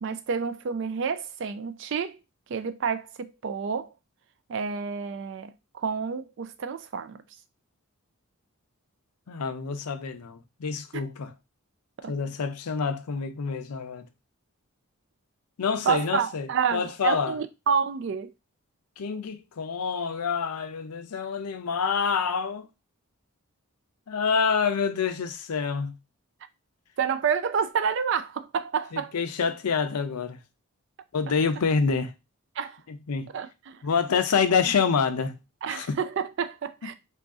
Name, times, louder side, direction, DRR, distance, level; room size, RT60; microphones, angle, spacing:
voice 1, 0.0-2.2 2.5-3.9 4.5-7.2 12.0-12.1 15.9-18.3 27.0-29.1 32.6-32.8 33.3-33.8 35.6-36.9, right 6 dB, 55° right, 0.3 m, -29 dB
voice 2, 9.3-11.3 12.1-14.1 15.6-17.3 19.0-22.7 24.1-25.9 28.9-30.4 31.1-32.1 32.9-33.3 33.8-35.4 35.7-36.0, left 5 dB, 90° left, 0.5 m, -27 dB
2.9 x 2.6 x 3.5 m
head